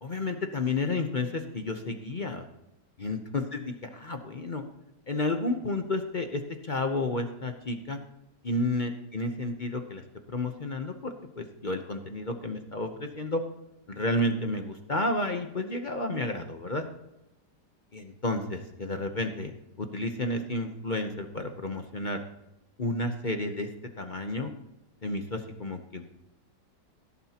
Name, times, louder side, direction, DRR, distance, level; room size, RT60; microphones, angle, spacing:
voice 1, 0.0-2.4 3.0-4.6 5.1-8.0 8.4-10.0 10.3-13.4 13.9-16.9 17.9-19.5 19.8-22.2 22.8-23.7 24.0-24.5 25.0-26.1, left 2 dB, 40° left, 5 dB, 0.7 m, -31 dB
17.0 x 11.0 x 2.9 m, 0.90 s
omnidirectional pair, 1.9 m